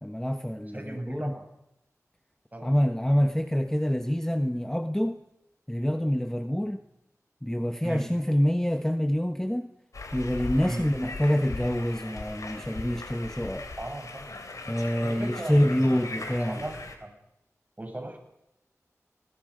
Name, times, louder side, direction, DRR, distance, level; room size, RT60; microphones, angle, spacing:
voice 1, 0.0-1.3 2.6-5.2 5.7-6.8 7.4-9.7 10.1-13.7 14.7-16.6, equal, 10° left, 1.2 m, -26 dB
voice 2, 0.7-1.4 2.5-2.7 7.8-8.1 10.7-10.9 13.8-16.7 17.0-17.1 17.8-18.2, right 1 dB, 30° right, 7.5 m, -37 dB
sound 1, 9.9-17.0, left 3 dB, 85° left, 3.1 m, -39 dB
29.5 x 21.0 x 5.1 m
wide cardioid pair, 60°, 6 cm